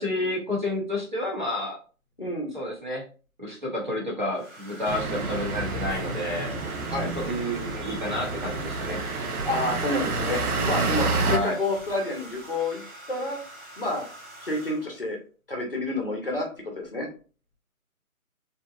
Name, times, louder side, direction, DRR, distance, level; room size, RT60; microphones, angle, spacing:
voice 1, 0.0-1.8 2.5-3.0 3.4-6.6 7.1-9.0 11.3-11.6, left 1 dB, 35° right, -3 dB, 0.7 m, -30 dB
Domestic sounds home sounds, 0.7-0.8 2.2-2.9 4.3-15.1 16.3-16.6 16.8-17.2, right 1 dB, 50° right, 1.0 m, -45 dB
voice 2, 2.2-2.5 6.9-7.1 9.4-12.8 13.1-13.4 13.8-14.0 14.4-15.2 15.5-17.1, left 2 dB, 40° left, 1 dB, 0.6 m, -29 dB
sound 1, 4.8-11.4, right 3 dB, 80° right, 0.7 m, -29 dB
2.7 x 2.1 x 2.3 m, 0.38 s
figure-of-eight pair, 160°, 44 cm